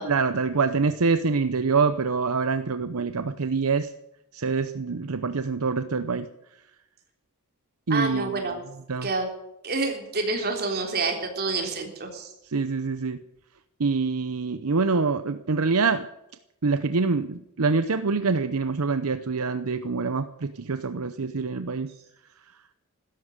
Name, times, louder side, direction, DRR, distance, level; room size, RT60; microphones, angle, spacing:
voice 1, 0.0-3.9 4.3-6.3 7.9-8.3 8.9-9.1 12.5-13.2 13.8-16.1 16.6-21.9, right 4 dB, 75° right, 11 dB, 0.7 m, -25 dB
voice 2, 7.9-8.6 9.0-9.3 9.6-12.3, right 3 dB, 45° right, 3 dB, 3.6 m, -28 dB
16.0 x 13.0 x 6.5 m, 0.87 s
head